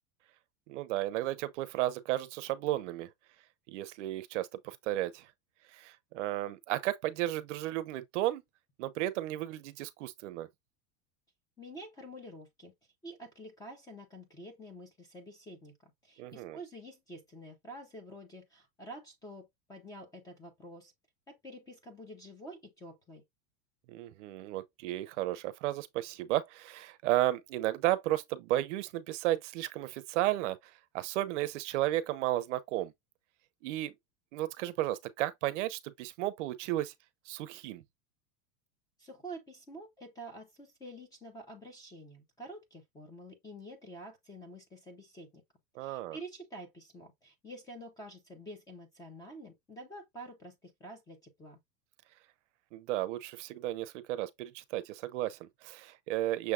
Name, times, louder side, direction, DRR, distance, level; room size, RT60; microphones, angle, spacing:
voice 1, 0.7-3.1 3.7-5.3 5.7-8.4 8.8-10.5 16.2-16.6 23.9-30.6 30.9-32.9 33.6-33.9 34.3-36.9 37.3-37.8 45.8-46.2 52.7-56.5, right 15 dB, 55° right, 0.7 m, -33 dB
voice 2, 11.6-12.7 13.0-15.7 16.0-20.9 21.3-23.2 39.0-45.4 45.8-51.6, right 1 dB, 10° left, 0.6 m, -48 dB
6.5 x 3.4 x 2.4 m
supercardioid pair, 175°, 44 cm